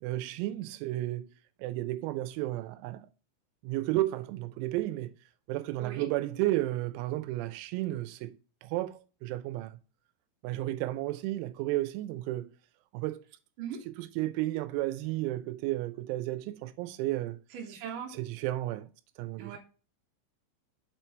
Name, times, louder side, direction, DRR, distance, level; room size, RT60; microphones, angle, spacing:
voice 1, 0.0-1.3 1.6-3.1 3.6-5.1 5.5-8.4 8.6-9.8 10.4-12.5 12.9-13.2 14.0-17.4 18.1-18.9 19.2-19.6, right 16 dB, 90° right, 3.4 m, -33 dB
voice 2, 17.5-18.2 19.4-19.6, right 8 dB, 55° right, 2.5 m, -39 dB
7.7 x 4.5 x 4.4 m
omnidirectional pair, 6.0 m